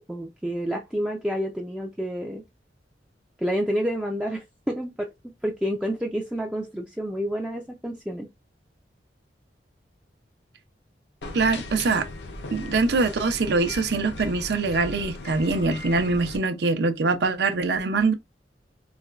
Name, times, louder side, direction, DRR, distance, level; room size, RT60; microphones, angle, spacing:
voice 1, 0.1-2.4 3.4-8.3, equal, 5° right, 0.3 m, -29 dB
sound 1, 11.2-16.4, left 2 dB, 75° left, 0.6 m, -37 dB
voice 2, 11.3-12.1 12.5-18.1, right 3 dB, 70° right, 0.5 m, -23 dB
4.1 x 2.1 x 2.3 m
head